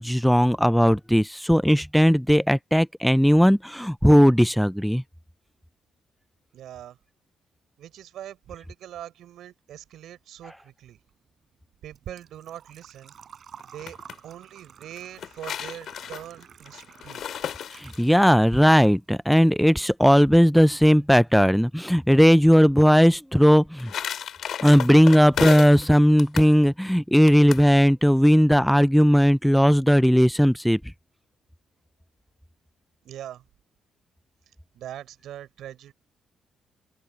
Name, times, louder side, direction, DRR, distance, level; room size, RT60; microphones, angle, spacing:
voice 1, 0.0-5.0 17.7-23.9 24.6-30.8, equal, ahead, 0.4 m, -17 dB
voice 2, 6.5-7.0 7.8-11.0 11.8-13.1 13.7-14.0 14.2-17.5 33.0-33.4 34.8-35.9, right 11 dB, 80° right, 5.2 m, -42 dB
Engine / Trickle dribble / Fill (with liquid), 11.0-18.9 19.3-20.3 20.5-20.6 22.6-22.7 22.8-23.2 23.5-23.6 23.9-24.0, right 8 dB, 55° right, 6.2 m, -51 dB
sound 1, 13.6-14.2 15.0-18.3 23.4-25.9 26.2-26.5 27.3-27.7, left 9 dB, 65° left, 5.6 m, -33 dB
cardioid pair, 90°, 0 cm